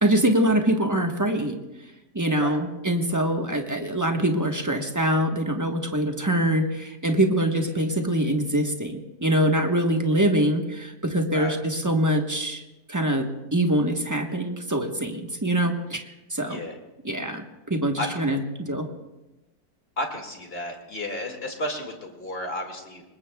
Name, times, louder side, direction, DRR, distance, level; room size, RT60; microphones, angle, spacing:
voice 1, 0.0-1.6 2.1-12.6 12.9-16.6 17.0-18.9, right 1 dB, 15° right, 3 dB, 0.9 m, -24 dB
voice 2, 18.0-18.3 20.0-23.0, left 1 dB, 30° left, 2 dB, 2.2 m, -32 dB
26.5 x 21.0 x 2.3 m, 1.0 s
omnidirectional pair, 2.1 m